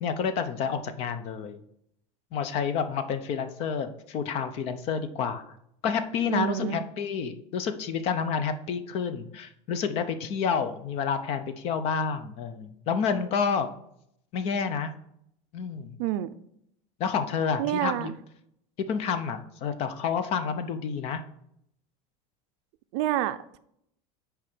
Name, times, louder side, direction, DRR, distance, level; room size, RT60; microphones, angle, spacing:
voice 1, 0.0-1.6 2.3-5.6 5.8-13.7 14.3-14.9 15.5-16.0 17.0-18.1 18.9-21.2, left 6 dB, 40° left, 11 dB, 0.6 m, -29 dB
voice 2, 6.3-6.8 16.0-16.4 17.6-18.1 22.9-23.6, right 13 dB, 60° right, 12 dB, 0.5 m, -28 dB
6.3 x 4.8 x 6.0 m, 0.74 s
cardioid pair, 175°, 16 cm